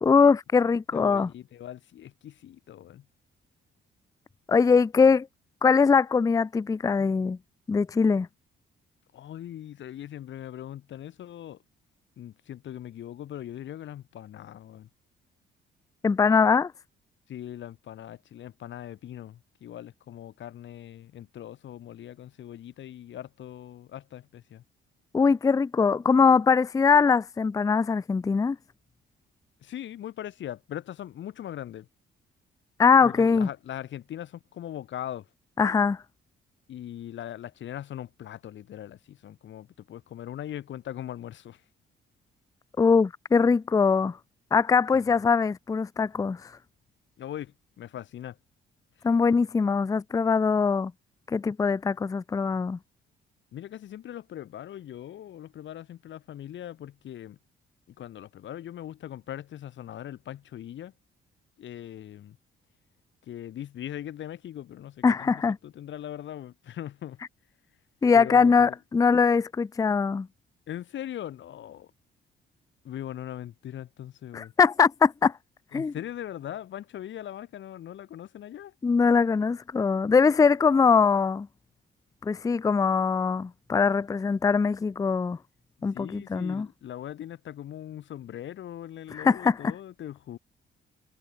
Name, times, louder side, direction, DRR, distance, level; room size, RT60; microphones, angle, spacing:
voice 1, 0.0-1.3 4.5-5.3 5.6-7.4 7.7-8.3 16.0-16.7 25.1-28.6 32.8-33.5 35.6-36.0 42.8-44.2 44.5-46.5 49.0-50.9 51.3-52.8 65.0-65.6 68.0-70.3 74.3-75.3 75.7-75.9 78.8-81.5 82.2-85.4 85.8-86.7 89.1-89.6, left 5 dB, 15° left, 0.4 m, -22 dB
voice 2, 0.9-3.1 9.1-11.6 12.2-14.9 17.3-24.6 29.6-31.9 33.0-35.3 36.7-41.6 44.9-45.2 47.2-48.4 53.5-57.4 57.9-60.9 61.6-62.4 63.2-67.2 68.1-68.7 70.7-71.9 72.8-74.5 75.7-78.7 85.9-90.4, left 11 dB, 70° left, 2.8 m, -40 dB
cardioid pair, 90°, 20 cm